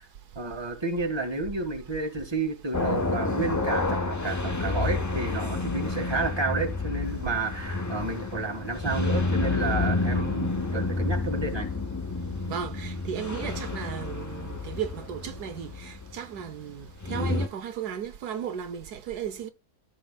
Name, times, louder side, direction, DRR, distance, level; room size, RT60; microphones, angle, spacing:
voice 1, 0.3-11.7, right 3 dB, 15° right, 1.6 m, -31 dB
sound 1, 2.7-17.5, left 3 dB, 20° left, 0.5 m, -29 dB
voice 2, 12.5-19.5, right 8 dB, 80° right, 1.4 m, -35 dB
14.5 x 6.4 x 2.3 m
omnidirectional pair, 1.7 m